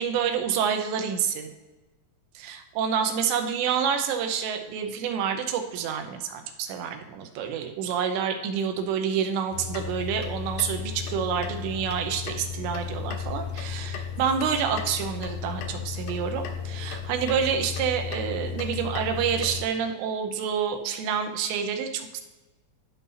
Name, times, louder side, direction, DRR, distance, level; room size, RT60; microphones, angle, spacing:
voice 1, 0.0-1.5 2.4-22.2, right 7 dB, 90° right, 5 dB, 3.0 m, -28 dB
sound 1, 9.5-19.7, left 6 dB, 80° left, 2.5 m, -34 dB
12.5 x 5.4 x 2.8 m, 1.1 s
omnidirectional pair, 5.0 m